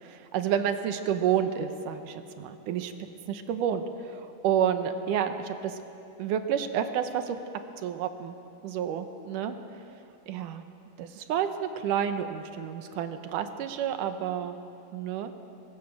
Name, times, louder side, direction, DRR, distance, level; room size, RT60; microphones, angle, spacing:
voice 1, 0.0-2.9 3.3-5.8 6.2-7.4 7.8-8.4 8.6-9.6 10.3-10.6 11.0-14.6 14.9-15.3, right 9 dB, 70° right, 8 dB, 2.2 m, -30 dB
22.5 x 22.0 x 6.4 m, 2.7 s
omnidirectional pair, 4.3 m